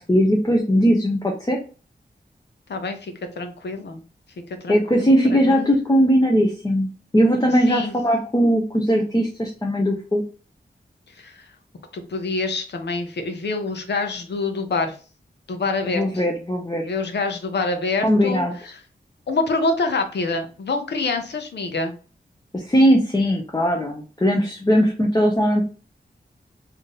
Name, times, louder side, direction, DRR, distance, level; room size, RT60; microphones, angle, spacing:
voice 1, 0.0-1.6 4.7-10.2 15.9-16.9 18.0-18.5 22.5-25.6, equal, 20° left, -1 dB, 0.7 m, -19 dB
voice 2, 2.7-4.0 4.5-5.7 7.7-8.0 11.2-11.5 11.9-15.0 15.5-16.0 16.8-18.8 19.3-21.9, left 3 dB, 90° left, 6 dB, 0.8 m, -26 dB
3.6 x 2.8 x 3.7 m, 0.36 s
wide cardioid pair, 80°, 17 cm